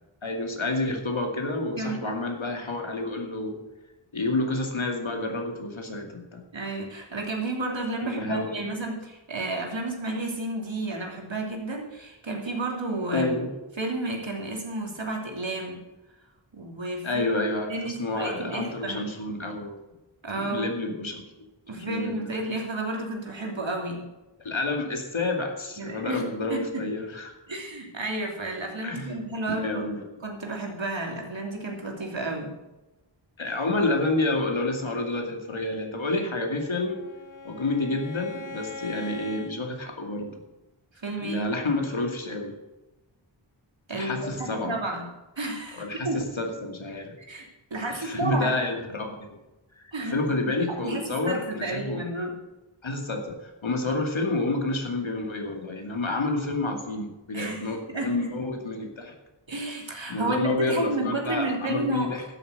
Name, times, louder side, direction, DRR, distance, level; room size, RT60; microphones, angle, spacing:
voice 1, 0.2-3.6 4.1-6.4 8.0-8.6 13.1-13.5 17.0-19.8 20.4-21.2 21.8-22.3 24.4-27.3 28.8-30.0 33.4-37.0 37.4-40.4 41.2-42.5 43.9-44.8 45.8-47.1 47.9-49.4 49.8-52.0 52.8-53.4 53.6-59.1 60.1-62.2, left 2 dB, 75° left, 3 dB, 2.4 m, -29 dB
voice 2, 1.8-2.1 6.5-13.3 13.8-15.8 16.5-17.2 17.7-19.0 20.2-20.7 21.7-24.0 25.8-26.9 27.5-29.8 30.2-32.5 41.0-41.5 43.9-45.1 45.4-46.2 47.2-48.6 49.9-50.2 50.7-52.3 57.3-58.2 59.5-62.2, right 2 dB, 70° right, 0 dB, 3.0 m, -32 dB
Bowed string instrument, 36.4-39.6, left 4 dB, 40° left, 1.0 m, -41 dB
12.5 x 8.1 x 6.7 m, 1.0 s
wide cardioid pair, 50°, 47 cm